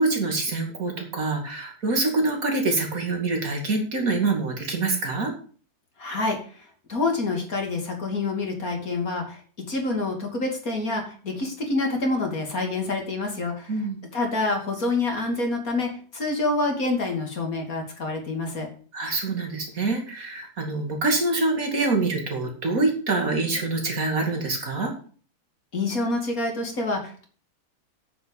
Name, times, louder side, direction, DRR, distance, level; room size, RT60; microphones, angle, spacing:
voice 1, 0.0-5.3 13.7-14.0 18.9-24.9, right 3 dB, 60° right, 2 dB, 2.9 m, -25 dB
voice 2, 6.0-6.6 6.9-9.4 9.7-13.7 14.1-18.7 25.7-27.2, left 2 dB, 60° left, 2 dB, 3.2 m, -27 dB
8.6 x 7.8 x 7.1 m, 0.42 s
omnidirectional pair, 1.7 m